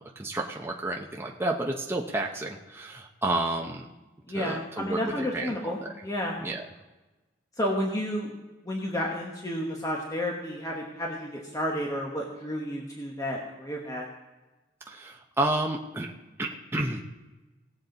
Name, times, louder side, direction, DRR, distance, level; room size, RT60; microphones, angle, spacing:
voice 1, 0.0-3.9 4.3-5.9 6.4-6.6 14.9-16.1 16.4-17.0, right 2 dB, 10° right, 0 dB, 0.7 m, -31 dB
voice 2, 4.3-6.4 7.6-8.3 8.6-14.1, equal, 20° left, -1 dB, 1.2 m, -31 dB
18.5 x 7.3 x 3.9 m, 1.1 s
head